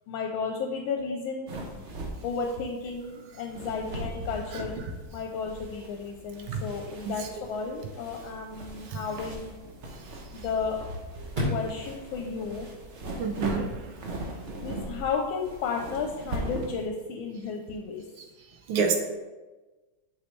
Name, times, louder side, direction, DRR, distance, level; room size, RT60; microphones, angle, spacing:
voice 1, 0.1-1.5 2.2-4.8 5.1-9.5 10.3-10.8 11.5-12.7 14.6-18.0, left 5 dB, 80° left, 2 dB, 1.4 m, -33 dB
sound 1, 1.5-16.9, right 1 dB, 55° right, 0.8 m, -39 dB
Chirp tweet / Car / Slam, 3.5-13.5, left 1 dB, 30° right, 1.1 m, -41 dB
voice 2, 13.2-13.9 18.7-19.0, right 5 dB, 85° right, 4 dB, 1.7 m, -29 dB
8.2 x 4.7 x 3.1 m, 1.2 s
omnidirectional pair, 2.3 m